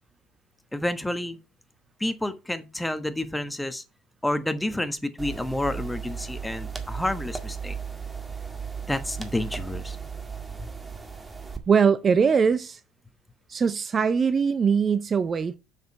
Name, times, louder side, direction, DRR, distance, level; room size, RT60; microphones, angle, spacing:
voice 1, 0.7-1.4 2.0-3.8 4.2-7.8 8.9-10.0 10.6-10.7, left 1 dB, 10° left, 1.3 m, -29 dB
sound 1, 5.2-11.6, right 6 dB, 20° right, 1.9 m, -36 dB
voice 2, 11.7-12.8 13.5-15.6, right 6 dB, 35° right, 0.6 m, -21 dB
6.7 x 6.6 x 5.5 m
hypercardioid pair, 65°, 0 cm